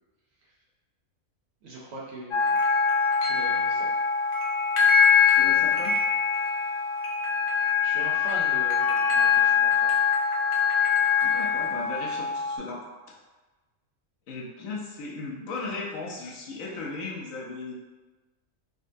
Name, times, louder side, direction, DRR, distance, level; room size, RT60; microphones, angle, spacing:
voice 1, 1.6-2.5 3.2-3.9 7.8-10.0, right 2 dB, 60° right, -4 dB, 0.8 m, -40 dB
sound 1, 2.3-12.6, left 6 dB, 65° left, 0.5 m, -23 dB
voice 2, 5.2-6.0 11.2-12.8 14.3-17.7, left 3 dB, 80° left, -3 dB, 1.1 m, -36 dB
3.7 x 2.2 x 2.5 m, 1.2 s
omnidirectional pair, 1.4 m